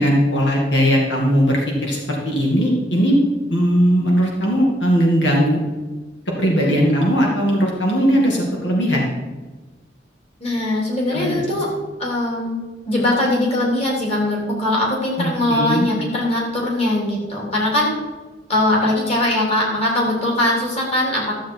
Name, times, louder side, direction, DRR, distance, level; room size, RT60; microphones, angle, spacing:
voice 1, 0.0-3.2 3.5-5.6 6.3-9.1 11.1-11.4 15.2-15.9, equal, 75° left, -2 dB, 2.2 m, -18 dB
voice 2, 10.4-11.7 12.0-12.6 12.9-18.0 18.5-21.3, left 1 dB, 35° left, -3 dB, 3.2 m, -21 dB
13.5 x 7.6 x 4.6 m, 1.3 s
head